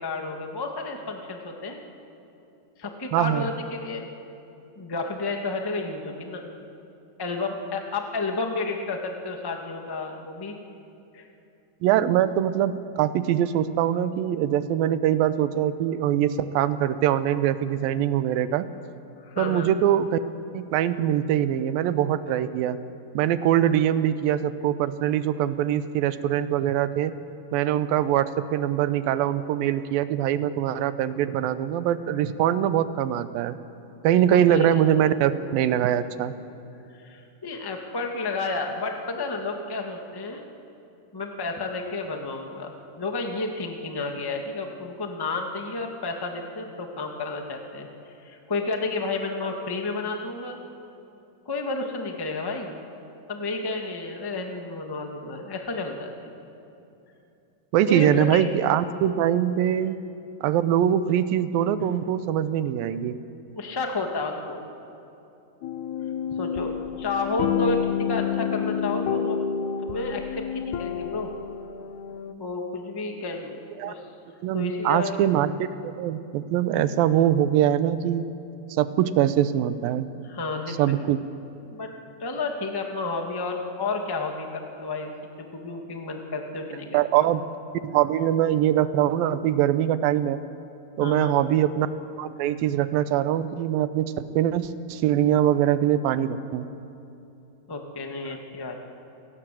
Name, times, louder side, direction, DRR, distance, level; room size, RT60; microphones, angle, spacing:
voice 1, 0.0-1.8 2.8-4.0 4.8-6.5 7.2-10.6 11.1-11.2 19.2-19.7 34.3-34.7 36.9-40.5 41.1-47.9 48.2-50.6 51.4-52.7 53.3-56.4 57.9-58.5 63.5-64.6 66.4-67.8 68.1-69.4 69.8-71.3 72.4-74.0 74.5-75.1 80.2-81.0 81.7-81.9 82.2-85.1 85.4-87.3 91.0-91.4 97.7-98.8, left 3 dB, 15° left, 3 dB, 0.8 m, -31 dB
voice 2, 3.1-3.5 11.8-18.7 19.4-20.2 20.5-22.8 23.1-27.1 27.5-33.6 34.0-36.3 57.7-60.0 60.4-63.2 73.8-73.9 74.4-78.3 78.8-80.1 80.7-81.2 86.9-87.4 87.8-90.4 91.0-91.9 92.2-96.7, right 11 dB, 85° right, 13 dB, 2.6 m, -23 dB
sound 1, 65.6-72.3, left 8 dB, 75° left, 1.8 m, -29 dB
28.0 x 17.5 x 7.7 m, 2.8 s
omnidirectional pair, 4.0 m